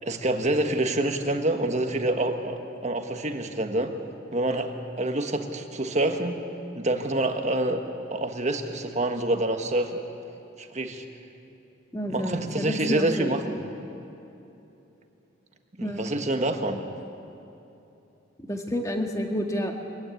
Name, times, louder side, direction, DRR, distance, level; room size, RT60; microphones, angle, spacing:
voice 1, 0.0-3.9 4.3-6.4 6.7-7.8 8.1-10.0 10.6-11.0 12.1-13.6 15.8-16.8, right 1 dB, 35° right, 5 dB, 1.4 m, -27 dB
voice 2, 11.9-13.3 15.8-16.1 18.4-19.7, equal, 15° left, 2 dB, 1.8 m, -29 dB
24.0 x 15.0 x 9.6 m, 2.9 s
head